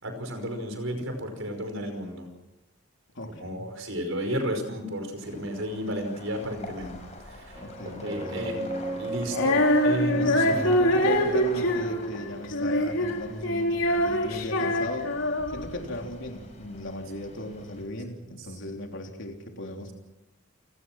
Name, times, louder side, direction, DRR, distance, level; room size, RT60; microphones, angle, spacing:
voice 1, 0.0-2.3 3.4-6.9 7.3-8.6 9.0-10.6, equal, 70° right, 6 dB, 5.3 m, -33 dB
voice 2, 3.2-3.6 6.8-7.0 7.6-8.8 10.1-15.1 15.5-19.9, left 1 dB, 60° left, 2 dB, 3.7 m, -37 dB
sound 1, 5.2-17.8, left 2 dB, 30° left, 6.6 m, -46 dB
sound 2, 7.5-18.8, right 1 dB, 20° right, 2.6 m, -41 dB
Female singing, 9.3-15.7, left 1 dB, 85° left, 3.6 m, -24 dB
29.0 x 18.5 x 6.2 m, 1.0 s
head